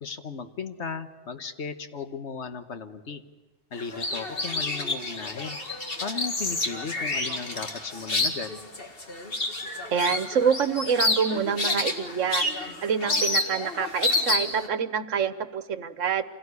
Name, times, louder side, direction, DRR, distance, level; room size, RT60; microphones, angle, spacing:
voice 1, 0.0-3.2 3.7-5.6 6.0-8.6, left 5 dB, 65° left, 9 dB, 1.5 m, -36 dB
sound 1, 3.8-14.7, left 2 dB, 50° left, 2.2 m, -29 dB
voice 2, 9.7-16.2, right 7 dB, 85° right, 13 dB, 1.4 m, -27 dB
26.0 x 17.5 x 9.7 m, 1.2 s
omnidirectional pair, 1.2 m